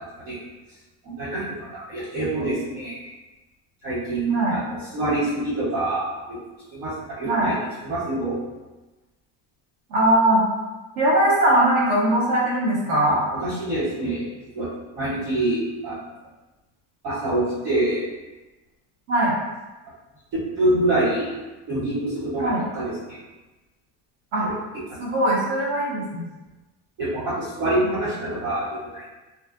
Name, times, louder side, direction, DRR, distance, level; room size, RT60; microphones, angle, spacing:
voice 1, 1.0-1.5 1.7-3.1 3.8-6.4 6.7-7.5 7.8-8.4 13.4-14.2 14.5-14.7 14.9-16.0 17.0-18.1 20.3-21.3 21.7-23.2 24.4-24.5 25.0-25.2 27.0-28.7 28.9-29.0, right 1 dB, 75° right, -9 dB, 1.4 m, -25 dB
voice 2, 9.9-10.4 11.0-13.2 19.1-19.4 22.4-22.6 24.3-24.5 25.0-26.3 27.8-27.9, right 1 dB, 45° right, -4 dB, 0.7 m, -20 dB
2.5 x 2.4 x 2.3 m, 1.1 s
cardioid pair, 170°, 43 cm